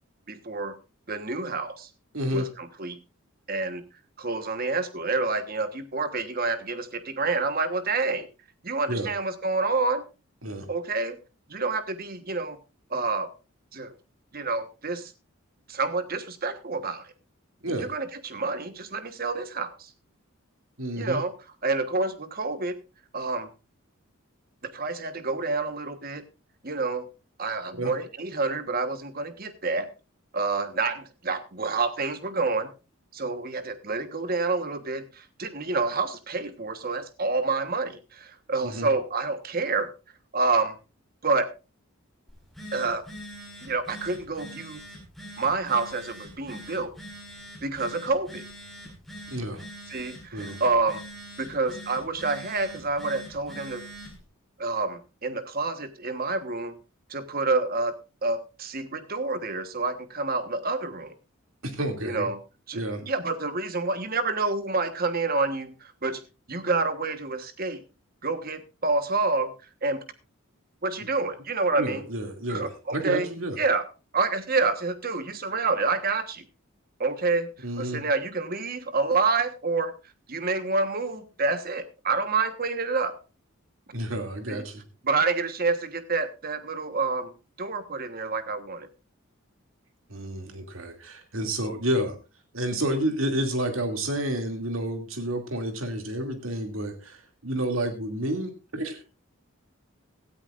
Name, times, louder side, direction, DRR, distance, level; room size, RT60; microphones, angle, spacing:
voice 1, 0.3-0.7 1.1-1.9 2.3-3.0 3.5-3.8 4.2-8.3 8.6-10.0 10.7-11.2 11.5-12.6 12.9-13.3 13.7-13.9 14.3-15.1 15.7-17.1 17.8-19.9 21.0-21.3 21.6-22.8 23.1-23.5 24.6-26.2 26.6-27.1 27.4-29.9 30.3-32.7 33.1-39.9 40.3-40.8 41.2-41.5 42.7-43.0 43.6-44.8 45.4-46.9 47.6-48.4 49.9-51.0 51.4-53.8 54.6-56.8 57.1-61.1 62.0-62.4 62.7-66.2 66.5-67.8 68.2-69.5 69.8-70.0 70.8-72.0 72.5-73.3 73.6-73.9 74.1-76.4 77.0-77.5 77.8-79.9 80.3-83.2 84.5-84.6 85.0-87.3 87.6-88.9, right 3 dB, 45° right, 10 dB, 1.3 m, -28 dB
voice 2, 2.1-2.5 8.9-9.1 10.4-10.7 17.6-17.9 20.8-21.2 27.7-27.9 38.6-38.9 49.3-49.6 50.3-50.6 61.6-62.3 62.7-63.1 71.8-73.6 77.6-78.0 83.9-84.8 90.1-92.2 92.5-99.0, right 1 dB, 70° right, 5 dB, 2.6 m, -30 dB
Telephone, 42.3-54.2, equal, ahead, 4.7 m, -43 dB
17.5 x 13.0 x 2.5 m, 0.30 s
head